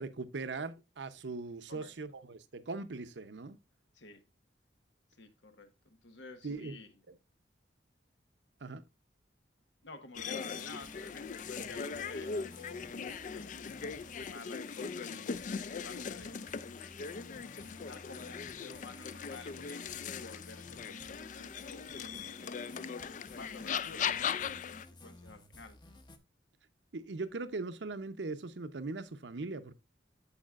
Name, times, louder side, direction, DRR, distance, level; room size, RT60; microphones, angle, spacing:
voice 1, 0.0-3.6 6.4-6.8 7.1-7.2 8.6-8.8 26.9-29.7, right 3 dB, 80° right, 0.7 m, -40 dB
voice 2, 5.2-6.9 9.8-16.3 17.6-22.1 23.4-25.8, left 3 dB, 90° left, 1.2 m, -52 dB
sound 1, 10.1-24.8, left 6 dB, 45° left, 0.4 m, -39 dB
sound 2, 10.2-26.2, left 2 dB, 25° left, 0.7 m, -54 dB
14.0 x 4.9 x 2.4 m
head